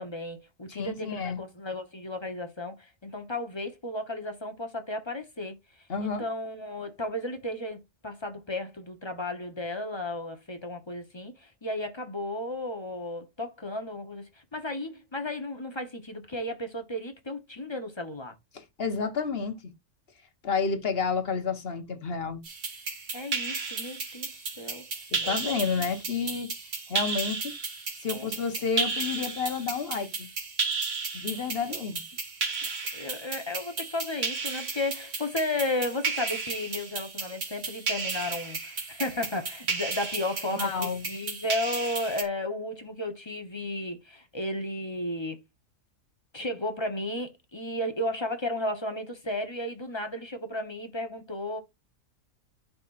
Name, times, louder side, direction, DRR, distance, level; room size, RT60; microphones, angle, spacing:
voice 1, 0.0-18.3 23.1-24.3 24.6-24.9 25.2-25.9 28.1-28.3 31.7-31.8 32.9-45.4 46.3-51.6, left 1 dB, 25° left, 1.0 m, -34 dB
voice 2, 0.7-1.4 5.9-6.2 18.5-19.7 20.4-22.4 25.1-26.5 26.9-27.6 28.0-30.3 31.1-32.0 40.5-41.0, left 5 dB, 50° left, 1.3 m, -30 dB
sound 1, 22.4-42.2, right 4 dB, 65° right, 2.0 m, -34 dB
12.0 x 4.3 x 2.5 m
omnidirectional pair, 1.4 m